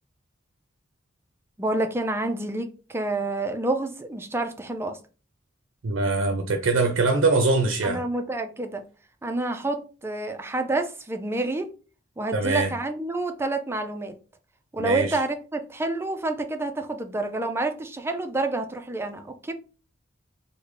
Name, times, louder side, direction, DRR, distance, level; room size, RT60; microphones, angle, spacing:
voice 1, 1.6-5.0 7.8-8.8 9.2-11.7 12.2-14.2 14.7-19.5, right 2 dB, 10° right, 0.3 m, -28 dB
voice 2, 5.8-8.0 12.3-12.7 14.8-15.2, right 3 dB, 75° right, 0.5 m, -23 dB
3.7 x 2.1 x 3.2 m
head